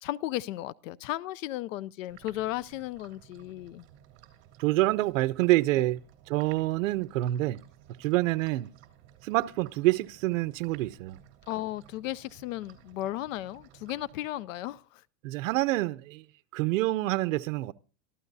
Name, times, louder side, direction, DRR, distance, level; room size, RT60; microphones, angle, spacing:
voice 1, 0.0-3.9 5.8-5.9 11.5-15.0, left 15 dB, 75° left, 0.6 m, -35 dB
sound 1, 2.1-14.8, right 11 dB, 40° right, 3.1 m, -56 dB
voice 2, 4.6-6.0 6.3-7.6 8.0-8.7 9.2-11.2 15.2-16.2 16.5-17.7, right 18 dB, 70° right, 0.7 m, -27 dB
25.5 x 14.0 x 2.7 m
supercardioid pair, 170°, 40 cm